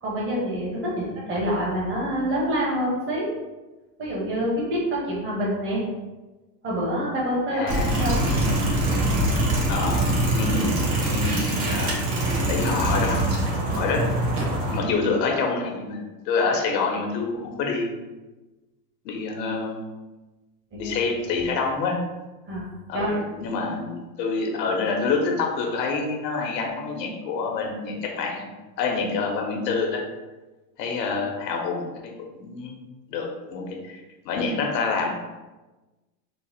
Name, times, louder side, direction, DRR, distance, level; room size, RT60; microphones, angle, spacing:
voice 1, 0.0-3.3 4.0-5.8 6.6-8.1 14.3-14.4 20.7-21.0 22.5-23.2, equal, 25° right, -5 dB, 1.2 m, -27 dB
voice 2, 7.5-8.1 9.7-10.0 10.3-10.8 11.0-11.9 12.5-13.3 13.7-14.0 14.7-18.0 19.0-19.8 20.8-22.0 22.9-28.4 28.8-30.0 30.8-31.9 32.3-32.8 33.1-35.1, left 4 dB, 85° left, 1 dB, 1.1 m, -27 dB
sound 1, 7.7-14.8, right 1 dB, 55° right, 1.2 m, -23 dB
4.0 x 2.1 x 4.1 m, 1.1 s
supercardioid pair, 145°, 49 cm